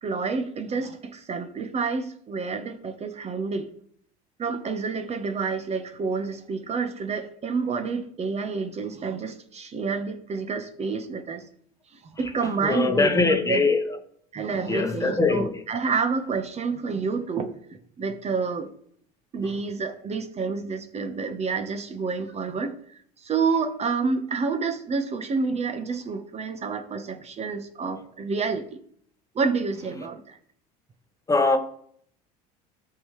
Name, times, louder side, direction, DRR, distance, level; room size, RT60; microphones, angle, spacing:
voice 1, 0.0-3.7 4.4-11.4 12.2-13.6 14.3-17.5 18.0-18.7 19.3-28.8 29.3-30.4, right 4 dB, 35° right, 1.1 m, -29 dB
voice 2, 12.2-14.0 14.7-15.6 19.4-19.5 31.3-31.6, left 3 dB, 15° left, 1.1 m, -23 dB
13.5 x 5.8 x 3.2 m
supercardioid pair, 90°, 20 cm